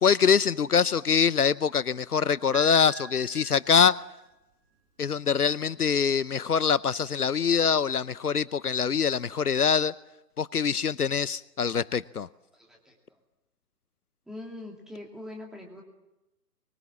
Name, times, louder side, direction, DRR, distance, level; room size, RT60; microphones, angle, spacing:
voice 1, 0.0-4.0 5.0-9.9 10.4-12.3, left 6 dB, 70° left, 0.8 m, -24 dB
Piano, 2.5-4.5 5.8-5.9, right 5 dB, 20° right, 5.0 m, -45 dB
voice 2, 12.5-12.9 14.3-15.8, left 1 dB, ahead, 2.6 m, -42 dB
24.5 x 24.0 x 7.4 m
figure-of-eight pair, 140°, 48 cm